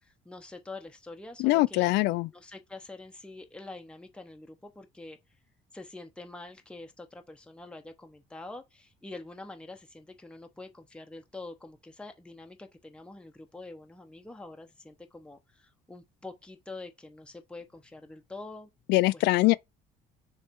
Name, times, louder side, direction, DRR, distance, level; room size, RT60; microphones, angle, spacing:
voice 1, 0.0-5.2 5.7-18.7 19.1-19.3, left 2 dB, 5° left, 0.9 m, -46 dB
voice 2, 1.4-2.3 18.9-19.5, left 19 dB, 85° left, 0.4 m, -23 dB
6.4 x 3.2 x 4.6 m
cardioid pair, 110°, 17 cm